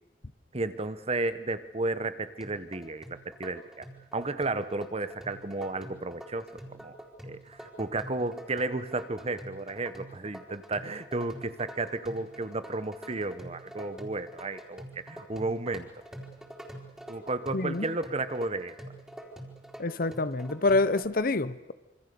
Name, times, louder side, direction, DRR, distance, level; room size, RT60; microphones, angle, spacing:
voice 1, 0.5-3.8 4.1-7.0 7.2-15.9 17.1-18.7, right 2 dB, 35° right, 12 dB, 1.2 m, -33 dB
sound 1, 2.4-21.0, right 1 dB, 5° right, 4.0 m, -46 dB
voice 2, 17.5-17.9 19.8-21.7, left 2 dB, 55° left, 14 dB, 0.9 m, -27 dB
26.5 x 25.5 x 7.0 m, 1.0 s
head